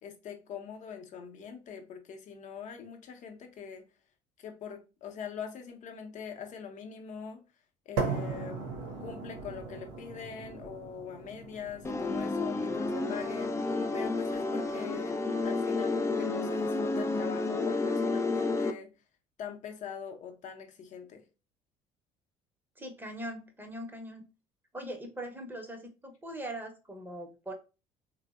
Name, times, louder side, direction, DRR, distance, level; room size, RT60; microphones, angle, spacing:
voice 1, 0.0-3.8 4.4-7.4 7.9-8.6 9.0-15.2 15.4-18.9 19.4-21.2, left 7 dB, 55° left, 0.7 m, -43 dB
sound 1, 8.0-16.0, right 4 dB, 80° right, 0.6 m, -39 dB
sound 2, 11.8-18.7, left 3 dB, 20° left, 0.4 m, -31 dB
voice 2, 22.8-24.2 24.7-27.5, right 1 dB, 15° right, 0.7 m, -41 dB
3.2 x 2.0 x 2.3 m
hypercardioid pair, 65°, 16 cm